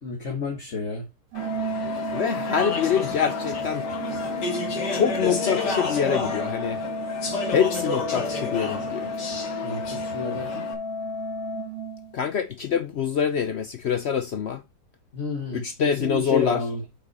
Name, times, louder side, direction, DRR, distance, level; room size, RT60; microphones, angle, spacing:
voice 1, 0.0-1.0 9.6-10.7 15.1-16.8, left 4 dB, 45° left, 1.8 m, -30 dB
Speech / Chatter, 1.3-10.7, left 3 dB, 85° left, 2.4 m, -31 dB
Organ, 1.3-12.4, left 1 dB, 80° right, 2.1 m, -32 dB
voice 2, 2.1-4.2 4.9-6.8 7.5-9.1 12.1-14.6 15.5-16.6, left 7 dB, 65° left, 0.6 m, -25 dB
8.1 x 6.0 x 4.2 m
omnidirectional pair, 1.8 m